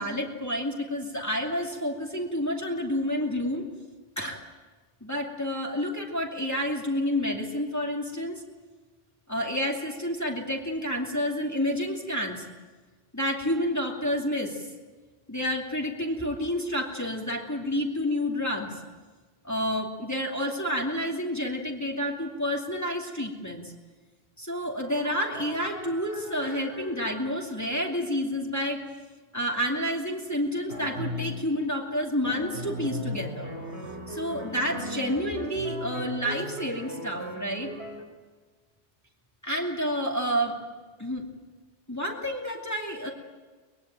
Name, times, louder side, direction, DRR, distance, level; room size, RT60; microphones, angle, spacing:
voice 1, 0.0-3.6 4.2-4.4 5.0-8.4 9.3-12.4 13.1-14.7 15.3-18.8 19.4-23.7 24.4-28.8 29.3-33.5 34.1-37.7 39.4-40.6 41.0-41.2 41.9-43.1, equal, 15° left, 0 dB, 2.6 m, -29 dB
sound 1, 24.8-27.9 30.7-31.5 32.3-38.0, equal, 90° right, 4.2 m, -37 dB
23.5 x 21.0 x 9.0 m, 1.4 s
omnidirectional pair, 1.1 m